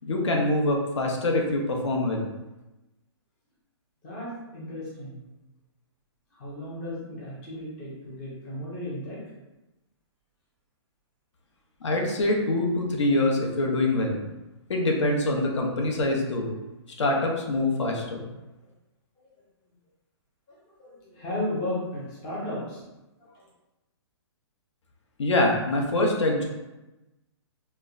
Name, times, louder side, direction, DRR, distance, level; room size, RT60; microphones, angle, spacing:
voice 1, 0.0-2.3 11.8-14.2 14.7-16.6 17.0-18.2 25.2-26.4, left 2 dB, 80° left, 1 dB, 0.8 m, -24 dB
voice 2, 4.0-5.2 6.3-9.2 19.2-19.3 20.5-22.8 23.2-23.4, left 1 dB, 10° left, -7 dB, 0.4 m, -35 dB
4.4 x 2.1 x 2.5 m, 1.0 s
hypercardioid pair, 175°, 15 cm